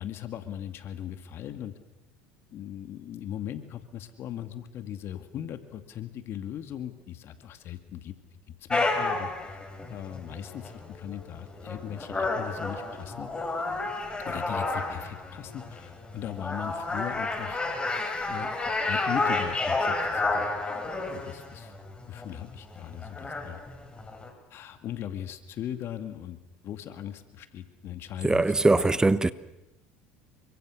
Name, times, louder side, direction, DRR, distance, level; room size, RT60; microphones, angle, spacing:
voice 1, 0.0-1.7 2.5-8.1 8.5-9.3 9.9-13.3 14.2-17.6 18.3-18.5 18.9-20.5 21.1-21.7 22.1-23.6 24.5-26.4 26.6-28.4, left 10 dB, 50° left, 2.3 m, -38 dB
sound 1, 8.7-24.3, left 3 dB, 20° left, 5.8 m, -31 dB
voice 2, 28.2-29.3, right 2 dB, 15° right, 1.2 m, -21 dB
30.0 x 24.5 x 6.5 m
hypercardioid pair, 80°, 5 cm